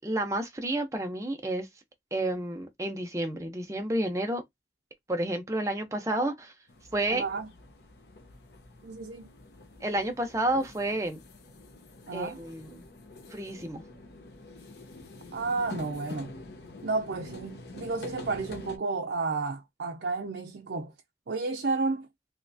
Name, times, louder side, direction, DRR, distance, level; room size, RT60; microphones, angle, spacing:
voice 1, 0.0-1.7 2.1-4.4 5.1-6.5 6.9-7.2 9.8-11.2 12.1-12.9 13.3-13.8, right 1 dB, 15° right, 0.7 m, -30 dB
sound 1, 6.7-18.8, left 2 dB, 70° left, 0.8 m, -47 dB
voice 2, 7.1-7.5 8.8-9.3 12.1-12.4 15.3-16.3 16.8-20.9 21.3-22.1, right 3 dB, 75° right, 0.5 m, -32 dB
3.2 x 2.8 x 2.6 m
head